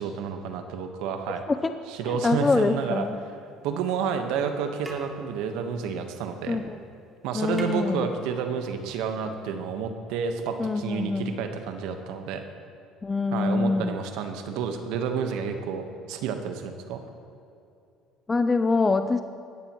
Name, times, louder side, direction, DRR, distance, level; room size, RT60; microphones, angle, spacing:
voice 1, 0.0-1.4 2.0-3.1 3.6-6.6 7.2-12.4 13.3-17.0, right 6 dB, 75° right, 6 dB, 1.2 m, -30 dB
voice 2, 2.0-3.2 6.5-6.8 7.3-8.1 10.6-11.4 13.0-14.0 18.3-19.2, left 3 dB, 25° left, 9 dB, 0.6 m, -25 dB
sound 1, 2.4-3.5 4.4-4.5 4.8-6.7 7.0-7.1 7.3-8.7 9.8-9.9, right 1 dB, 15° right, 2.6 m, -47 dB
19.5 x 14.0 x 3.1 m, 2.6 s
supercardioid pair, 80°, 0 cm